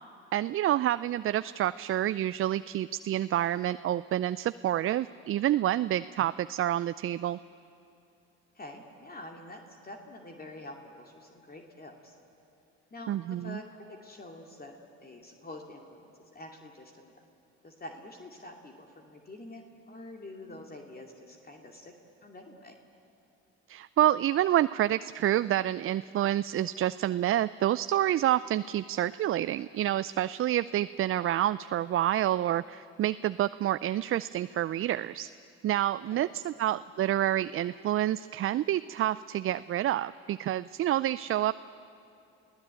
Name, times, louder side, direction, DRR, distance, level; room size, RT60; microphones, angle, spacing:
voice 1, 0.3-7.4 13.1-13.6 23.7-35.3 35.6-41.5, right 12 dB, 45° right, 15 dB, 0.5 m, -28 dB
voice 2, 8.5-12.2 12.9-14.8 15.0-16.0 16.3-17.2 17.6-21.9 22.2-22.7 36.1-36.3, left 1 dB, 30° left, 2 dB, 2.6 m, -46 dB
28.0 x 16.5 x 9.0 m, 2.6 s
supercardioid pair, 65°, 29 cm